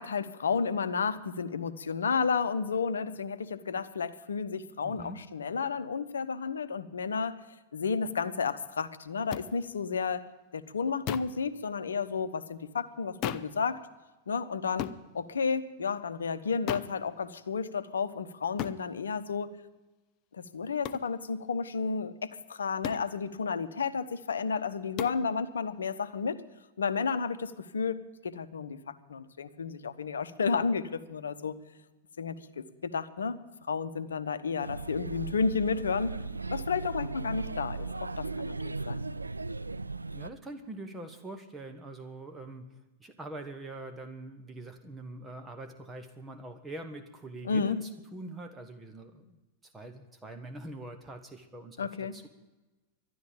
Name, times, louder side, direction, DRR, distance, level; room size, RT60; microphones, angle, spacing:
voice 1, 0.0-7.4 7.7-10.2 10.5-13.8 14.3-19.5 20.3-26.4 26.8-31.5 32.2-33.4 33.7-36.1 36.5-39.1 47.4-47.8 51.8-52.2, left 5 dB, 70° left, 13 dB, 0.9 m, -32 dB
voice 2, 4.8-5.2 40.1-52.3, right 2 dB, 15° right, 6 dB, 1.3 m, -43 dB
sound 1, 9.3-9.5 11.1-11.4 13.2-13.6 14.8-15.0 16.7-17.0 18.6-18.8 20.8-21.1 22.8-23.1 25.0-25.2, left 11 dB, 40° left, 0.7 m, -35 dB
Male speech man speaking / Child speech kid speaking / Chatter, 34.6-40.3, right 3 dB, 80° right, 0.4 m, -37 dB
12.5 x 11.0 x 9.0 m, 1.1 s
figure-of-eight pair, 90°, 0 cm